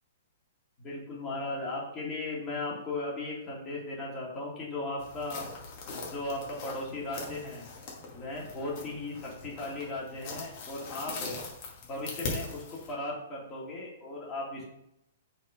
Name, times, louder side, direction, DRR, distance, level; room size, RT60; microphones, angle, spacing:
voice 1, 0.8-5.4 5.8-7.7 8.1-11.4 11.8-14.6, left 2 dB, 25° left, -4 dB, 2.7 m, -37 dB
sound 1, 5.0-12.9, left 3 dB, 40° left, 2.1 m, -41 dB
6.2 x 4.1 x 5.2 m, 0.80 s
hypercardioid pair, 155°, 0 cm